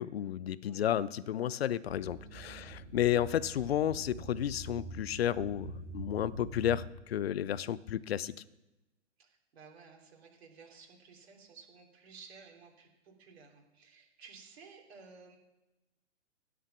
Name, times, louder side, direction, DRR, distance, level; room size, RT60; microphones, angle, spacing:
voice 1, 0.0-8.3, left 11 dB, 55° left, 18 dB, 0.7 m, -32 dB
sound 1, 1.9-6.9, right 3 dB, 10° right, 3.7 m, -45 dB
voice 2, 2.4-2.8 9.2-15.4, right 5 dB, 55° right, 1 dB, 3.3 m, -55 dB
16.5 x 7.5 x 5.9 m, 1.0 s
figure-of-eight pair, 115°, 37 cm